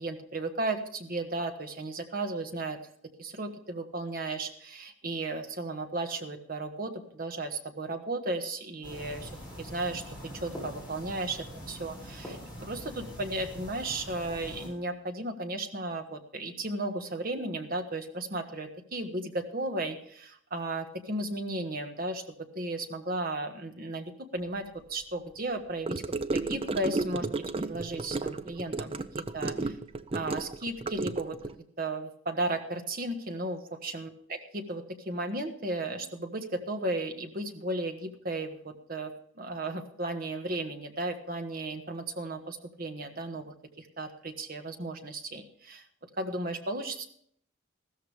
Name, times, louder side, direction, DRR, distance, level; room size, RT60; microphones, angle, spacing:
voice 1, 0.0-2.8 3.2-9.3 9.6-22.2 22.5-26.0 26.3-27.3 27.6-29.8 30.1-31.4 31.8-45.8 46.2-47.1, right 2 dB, 45° right, 5 dB, 1.4 m, -35 dB
sound 1, 8.8-14.7, equal, 5° right, 6.0 m, -43 dB
Gurgling / Car passing by / Sink (filling or washing), 25.9-31.5, right 3 dB, 25° right, 0.5 m, -33 dB
15.0 x 13.5 x 3.4 m, 0.65 s
head